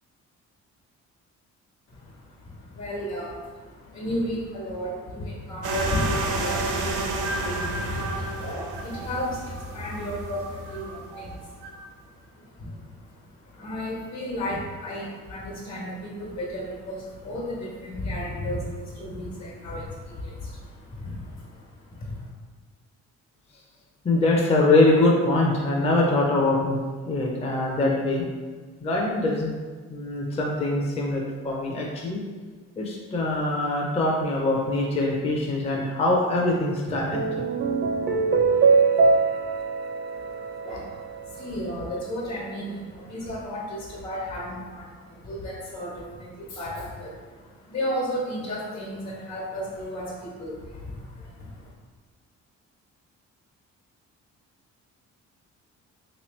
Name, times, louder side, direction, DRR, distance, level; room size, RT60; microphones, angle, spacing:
voice 1, 1.9-22.3 40.1-51.7, left 1 dB, 60° left, -2 dB, 1.2 m, -34 dB
sound 1, 5.6-11.8, right 2 dB, 85° right, 0.6 m, -30 dB
voice 2, 24.0-26.8 27.1-28.2 28.8-29.5 29.9-32.2 32.8-37.4, left 2 dB, 20° left, -2 dB, 0.5 m, -23 dB
sound 2, 36.9-41.5, right 4 dB, 40° right, 0.4 m, -23 dB
3.4 x 3.0 x 3.1 m, 1.5 s
cardioid pair, 90°, 30 cm